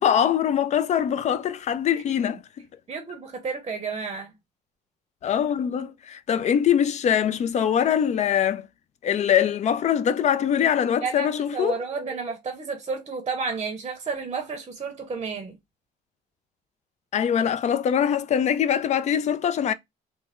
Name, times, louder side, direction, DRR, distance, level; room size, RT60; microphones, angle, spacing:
voice 1, 0.0-2.4 5.2-8.7 9.0-11.8 17.1-19.7, left 9 dB, 45° left, 0.4 m, -23 dB
voice 2, 2.9-4.3 11.0-15.5, right 5 dB, 30° right, 0.7 m, -31 dB
3.2 x 2.0 x 3.6 m
cardioid pair, 110°, 17 cm